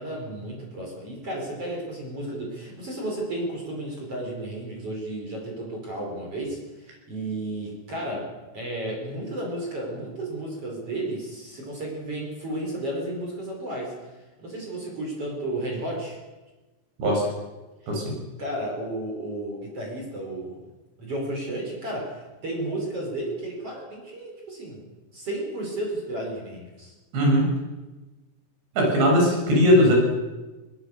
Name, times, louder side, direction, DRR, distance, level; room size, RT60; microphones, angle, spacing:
voice 1, 0.0-13.9 14.4-16.2 18.4-20.6 21.0-24.9 25.1-26.9, right 1 dB, 30° right, -1 dB, 5.8 m, -33 dB
voice 2, 27.1-27.5 28.8-29.9, equal, 70° right, -1 dB, 9.4 m, -19 dB
22.0 x 20.0 x 6.7 m, 1.2 s
omnidirectional pair, 5.2 m